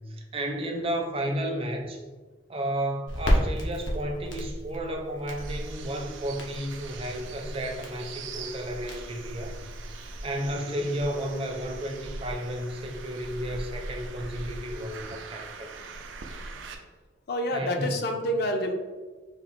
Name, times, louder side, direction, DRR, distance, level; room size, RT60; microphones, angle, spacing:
voice 1, 0.1-2.0 2.5-9.6 10.0-15.7 17.5-18.1, right 1 dB, 30° right, 2 dB, 0.5 m, -33 dB
Crackle, 3.1-10.4, equal, 85° left, 0.9 m, -33 dB
sound 1, 5.4-16.7, right 3 dB, 85° right, 0.5 m, -41 dB
voice 2, 10.5-10.8 17.3-18.7, equal, 55° left, 5 dB, 0.5 m, -28 dB
4.2 x 2.0 x 4.2 m, 1.3 s
head